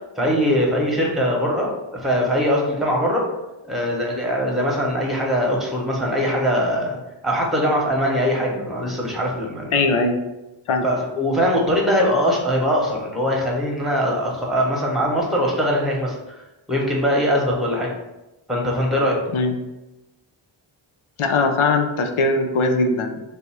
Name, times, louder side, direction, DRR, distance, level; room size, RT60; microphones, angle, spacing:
voice 1, 0.2-3.3 3.6-7.0 7.2-9.8 10.8-16.1 16.7-17.9 18.5-19.2, equal, ahead, -2 dB, 1.1 m, -21 dB
voice 2, 9.7-10.2 10.7-10.9 19.3-19.6 21.2-23.2, left 3 dB, 80° left, 4 dB, 0.7 m, -20 dB
3.4 x 2.7 x 4.5 m, 0.99 s
wide cardioid pair, 80°, 49 cm